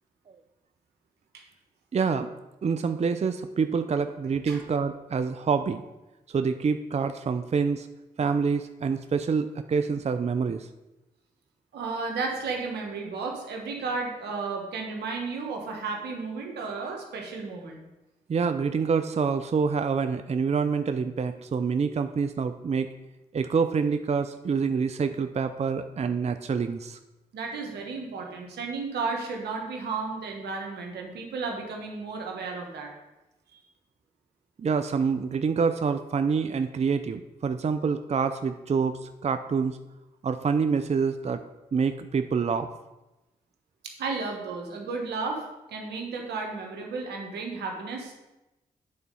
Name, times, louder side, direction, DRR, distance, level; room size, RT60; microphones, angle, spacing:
voice 1, 1.9-2.3 2.6-5.8 6.3-7.9 8.2-10.7 18.3-22.9 23.3-27.0 34.6-39.8 40.2-41.4 41.7-42.7, right 5 dB, 40° right, 9 dB, 0.5 m, -26 dB
voice 2, 11.7-17.8 27.3-32.9 33.5-33.6 43.8-48.1, right 4 dB, 85° right, 1 dB, 1.2 m, -33 dB
8.6 x 4.1 x 5.3 m, 0.99 s
supercardioid pair, 40°, 17 cm